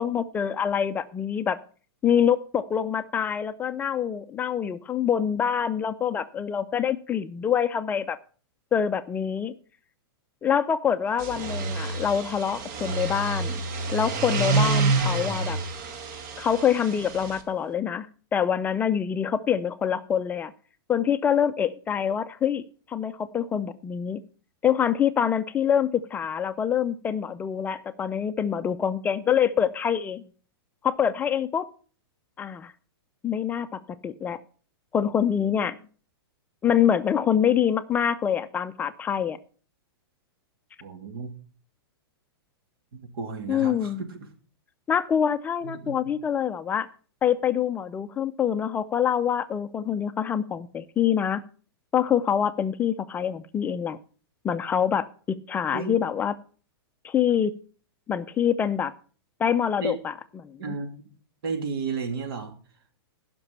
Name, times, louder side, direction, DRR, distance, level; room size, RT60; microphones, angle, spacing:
voice 1, 0.0-1.6 2.0-8.2 8.7-9.5 10.4-13.5 13.9-15.6 16.4-18.1 18.3-20.5 20.9-24.2 24.6-30.2 30.8-31.7 32.4-32.7 33.2-34.4 34.9-35.8 36.6-39.4 43.5-44.0 44.9-46.9 47.2-51.4 51.9-54.0 54.4-56.3 57.0-57.5 58.1-58.9 59.4-60.7, left 8 dB, 15° left, 11 dB, 0.4 m, -25 dB
sound 1, 11.1-17.4, right 3 dB, 45° right, 1.7 m, -28 dB
voice 2, 40.8-41.3 42.9-43.9 45.6-46.0 55.7-56.0 59.8-59.9 60.6-61.0 61.4-62.5, right 4 dB, 65° right, 5 dB, 2.9 m, -33 dB
15.5 x 6.0 x 5.5 m, 0.41 s
hypercardioid pair, 150°, 13 cm